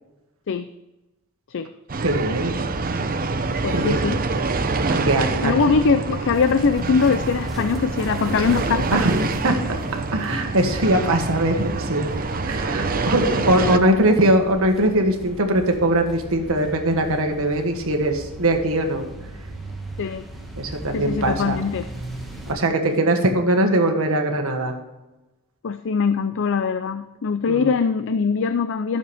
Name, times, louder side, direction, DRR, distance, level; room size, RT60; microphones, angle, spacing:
sound 1, 1.9-13.8, right 3 dB, 40° right, 0.8 m, -26 dB
voice 1, 2.0-2.6 3.7-4.0 4.9-5.8 8.9-9.2 9.4-9.8 10.1-12.0 12.4-19.1 20.6-21.6 22.5-24.7 27.5-27.7, right 1 dB, 65° right, 4 dB, 1.6 m, -21 dB
voice 2, 3.6-4.2 5.4-9.0 13.3-13.5 20.0-20.3 20.9-21.9 25.6-29.0, left 5 dB, 60° left, 10 dB, 0.5 m, -22 dB
sound 2, 6.2-22.5, right 1 dB, ahead, 1.7 m, -38 dB
12.5 x 7.2 x 3.5 m, 1.0 s
head